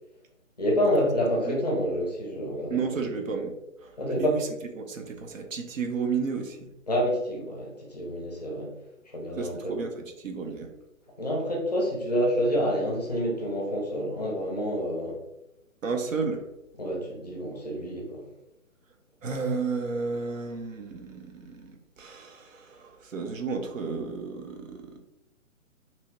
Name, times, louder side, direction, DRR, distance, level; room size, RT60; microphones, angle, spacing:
voice 1, 0.6-3.0 4.0-4.4 6.9-8.7 9.1-9.7 11.2-15.2 16.8-18.2, equal, 30° left, -1 dB, 0.5 m, -28 dB
voice 2, 2.7-3.5 3.8-3.9 4.2-4.5 4.8-6.7 9.4-10.7 15.8-16.4 19.2-25.0, right 5 dB, 70° right, 4 dB, 0.6 m, -32 dB
2.7 x 2.3 x 3.0 m, 0.90 s
hypercardioid pair, 155°, 41 cm